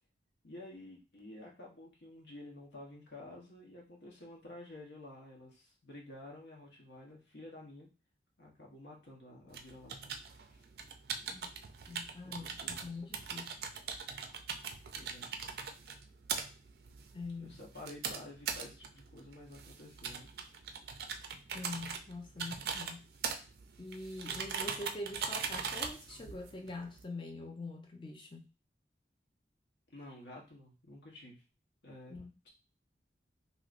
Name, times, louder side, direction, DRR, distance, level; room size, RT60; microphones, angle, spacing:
voice 1, 0.4-7.9 8.4-10.1 10.5-10.6 12.2-12.9 14.9-15.3 17.4-20.3 29.9-31.4 31.8-32.2, left 1 dB, 80° left, -1 dB, 1.0 m, -51 dB
sound 1, 9.5-27.0, right 6 dB, 60° right, 0.4 m, -41 dB
voice 2, 11.9-13.6 17.1-17.6 21.5-23.1 23.8-28.5 32.1-32.3, left 2 dB, 30° left, 4 dB, 0.4 m, -44 dB
3.0 x 2.8 x 2.5 m, 0.32 s
head